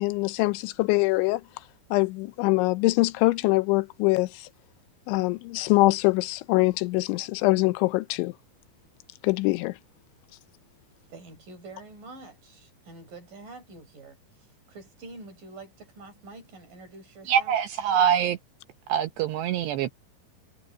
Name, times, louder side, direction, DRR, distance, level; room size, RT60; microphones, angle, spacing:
voice 1, 0.0-1.4 1.9-4.5 5.1-8.3 9.2-9.8, left 21 dB, 90° left, 3.1 m, -23 dB
voice 2, 11.1-14.2 14.7-17.6, right 3 dB, 45° right, 8.5 m, -46 dB
voice 3, 17.3-18.4 18.9-19.9, right 9 dB, 75° right, 2.9 m, -24 dB
omnidirectional pair, 5.2 m